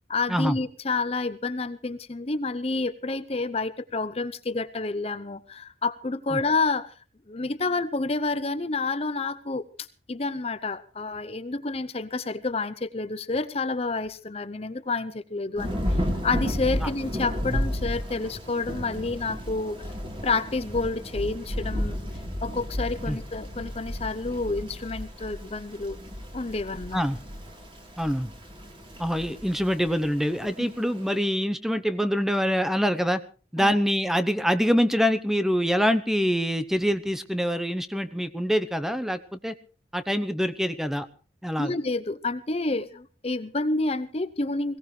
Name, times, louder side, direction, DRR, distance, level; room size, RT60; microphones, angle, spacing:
voice 1, 0.1-6.9 7.3-19.9 20.2-22.0 22.4-26.0 26.3-27.0 30.6-30.7 33.6-33.8 41.6-44.8, left 3 dB, 30° left, 13 dB, 0.7 m, -29 dB
Thunder / Rain, 15.6-31.2, equal, 25° right, 3.6 m, -33 dB
voice 2, 28.0-28.3 29.0-33.2 33.5-39.5 39.9-41.1 41.4-41.7, equal, ahead, 11 dB, 0.8 m, -25 dB
22.0 x 17.0 x 3.3 m, 0.36 s
head